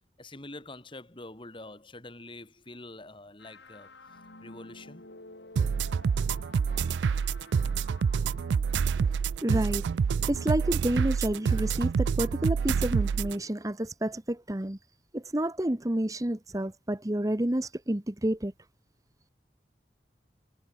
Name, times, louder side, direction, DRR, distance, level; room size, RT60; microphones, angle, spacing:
voice 1, 0.2-3.9 4.4-5.1, left 2 dB, 30° left, 2.4 m, -45 dB
sound 1, 3.4-10.2, left 2 dB, 80° left, 5.2 m, -52 dB
sound 2, 5.6-13.4, right 6 dB, 90° right, 0.4 m, -27 dB
voice 2, 9.4-9.8 10.3-14.8 15.1-18.5, right 1 dB, 20° right, 1.0 m, -29 dB
head